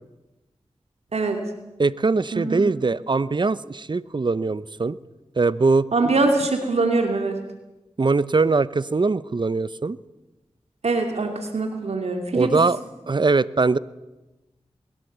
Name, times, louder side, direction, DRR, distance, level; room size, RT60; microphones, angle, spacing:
voice 1, 1.8-5.0 5.4-5.9 8.0-10.0 12.3-12.8 13.1-13.8, right 3 dB, 45° right, 18 dB, 0.8 m, -21 dB
voice 2, 5.9-7.4 10.8-12.5, right 3 dB, 75° right, 4 dB, 2.7 m, -23 dB
21.5 x 17.0 x 8.0 m, 1.0 s
cardioid pair, 45°, 11 cm